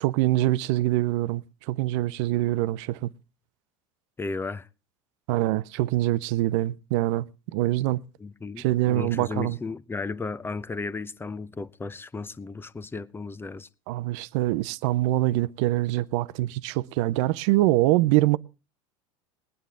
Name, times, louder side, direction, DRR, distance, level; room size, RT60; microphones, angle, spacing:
voice 1, 0.0-3.1 5.3-7.3 7.5-8.0 8.6-9.6 13.9-18.4, right 16 dB, 65° right, 0.7 m, -24 dB
voice 2, 4.2-4.7 8.2-13.7, left 4 dB, 15° left, 0.7 m, -34 dB
20.5 x 9.4 x 3.5 m
hypercardioid pair, 90°, 16 cm